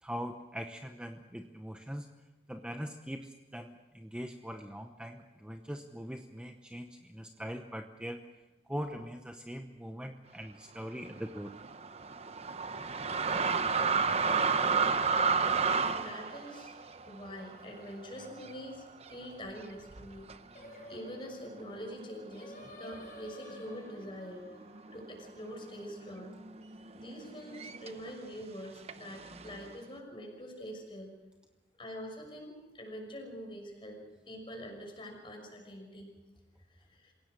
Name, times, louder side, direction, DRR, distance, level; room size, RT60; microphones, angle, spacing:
voice 1, 0.0-2.1 2.5-8.2 8.7-11.5, equal, 5° right, 5 dB, 0.9 m, -41 dB
sound 1, 11.0-18.7 19.0-19.1 19.9-20.3 21.1-21.2 21.5-23.2 23.5-24.1 24.3-28.1 28.9-29.7, right 5 dB, 35° right, 0.8 m, -32 dB
voice 2, 15.9-16.8 17.1-18.8 19.1-20.3 20.9-24.5 24.9-26.3 26.9-31.1 31.8-36.1 36.9-37.1, equal, 30° left, 1 dB, 6.1 m, -45 dB
Singing, 20.5-25.8, left 1 dB, 45° left, 6.8 m, -52 dB
27.5 x 17.0 x 6.6 m, 1.1 s
head